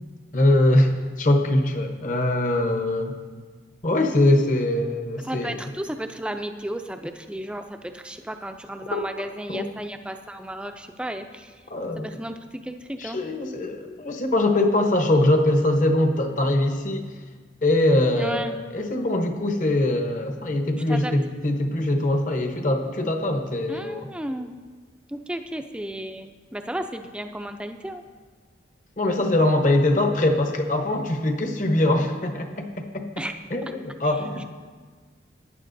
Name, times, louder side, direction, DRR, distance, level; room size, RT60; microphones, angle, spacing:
voice 1, 0.3-3.1 3.8-5.6 8.9-9.0 9.5-9.7 11.7-12.2 13.0-17.1 17.6-24.1 29.0-33.2 33.5-34.4, left 1 dB, 45° left, 5 dB, 0.9 m, -22 dB
voice 2, 5.2-11.6 12.0-13.2 18.1-18.6 20.9-21.1 23.7-24.5 25.1-28.0 33.2-33.3 34.4-34.5, right 1 dB, 5° right, 6 dB, 0.4 m, -33 dB
18.0 x 9.6 x 2.6 m, 1.5 s
head